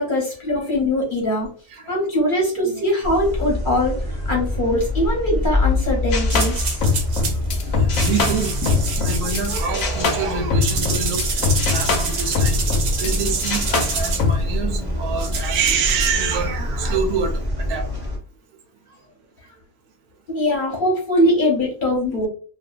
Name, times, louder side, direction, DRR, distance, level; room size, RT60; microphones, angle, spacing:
voice 1, 0.0-1.5 1.9-6.8 9.0-9.1 13.0-13.1 20.3-22.3, left 1 dB, 40° left, -2 dB, 0.8 m, -22 dB
sound 1, 3.0-18.2, left 1 dB, 35° right, 0.3 m, -25 dB
sound 2, 6.1-9.5 9.7-13.2 13.4-14.4, left 5 dB, 70° left, 1.0 m, -23 dB
sound 3, 6.3-7.4 7.9-9.9 10.6-14.2 15.2-16.2, right 5 dB, 65° right, 1.0 m, -28 dB
voice 2, 7.5-17.9, right 6 dB, 90° right, 6 dB, 1.1 m, -27 dB
2.7 x 2.4 x 2.3 m, 0.41 s
omnidirectional pair, 1.6 m